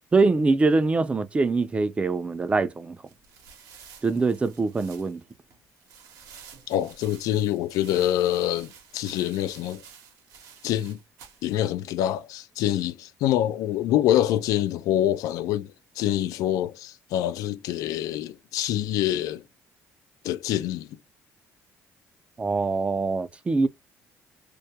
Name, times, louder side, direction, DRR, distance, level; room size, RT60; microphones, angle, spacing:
voice 1, 0.1-3.0 4.0-5.2 22.4-23.7, right 3 dB, 20° right, 0.3 m, -23 dB
sound 1, 3.1-11.6, right 7 dB, 80° right, 0.7 m, -50 dB
voice 2, 6.7-9.8 10.6-11.0 11.4-19.4 20.2-20.9, left 12 dB, 80° left, 0.4 m, -26 dB
2.3 x 2.1 x 2.7 m
cardioid pair, 100°, 6 cm